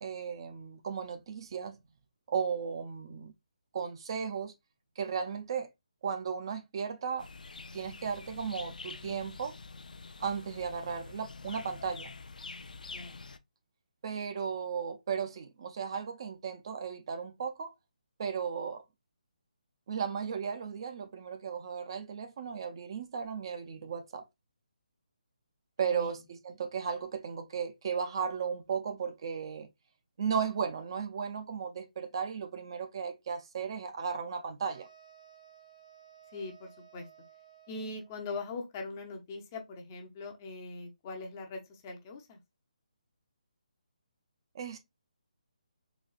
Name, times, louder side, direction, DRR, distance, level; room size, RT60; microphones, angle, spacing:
voice 1, 0.0-1.8 2.3-3.3 3.7-4.5 5.0-5.7 6.0-7.3 7.7-9.6 10.2-12.1 14.0-17.7 18.2-18.8 19.9-24.2 25.8-29.7 30.2-34.9 44.5-44.8, right 6 dB, 35° right, 0.4 m, -35 dB
sound 1, 7.2-13.4, left 4 dB, 90° left, 0.4 m, -46 dB
voice 2, 25.8-26.2 36.3-37.1 37.7-42.4, left 3 dB, 20° left, 0.5 m, -41 dB
sound 2, 34.6-38.3, right 9 dB, 80° right, 1.5 m, -57 dB
4.0 x 2.2 x 2.3 m
hypercardioid pair, 165°, 4 cm